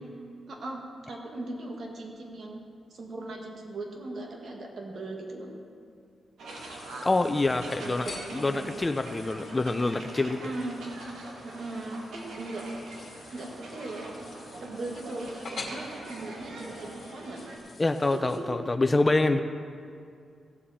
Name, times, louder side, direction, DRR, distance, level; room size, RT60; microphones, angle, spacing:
voice 1, 0.5-0.8 1.1-2.6 2.9-5.5 7.8-8.8 10.2-10.9 11.4-12.7 13.3-14.1 14.6-17.4 18.1-18.6, right 2 dB, 60° right, 0 dB, 2.0 m, -38 dB
sound 1, 6.4-17.6, right 2 dB, 85° right, 1.7 m, -44 dB
sound 2, 6.5-18.4, left 3 dB, 50° left, 2.0 m, -47 dB
voice 2, 7.0-8.1 8.3-10.4 17.8-19.4, left 2 dB, 25° left, 9 dB, 0.5 m, -26 dB
16.5 x 7.6 x 4.3 m, 2.3 s
cardioid pair, 85°, 0 cm